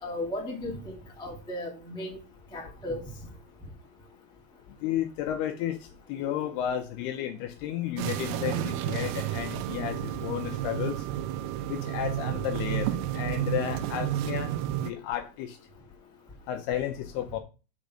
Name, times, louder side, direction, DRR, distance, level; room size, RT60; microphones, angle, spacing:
voice 1, 0.0-2.2 2.5-3.0, left 1 dB, 5° left, 0.3 m, -35 dB
voice 2, 4.8-5.7 6.1-10.9 11.7-12.9 13.1-14.5 14.9-15.5 16.5-17.4, left 11 dB, 75° left, 2.5 m, -32 dB
sound 1, 8.0-14.9, right 12 dB, 90° right, 2.2 m, -31 dB
6.9 x 5.2 x 6.2 m
omnidirectional pair, 5.3 m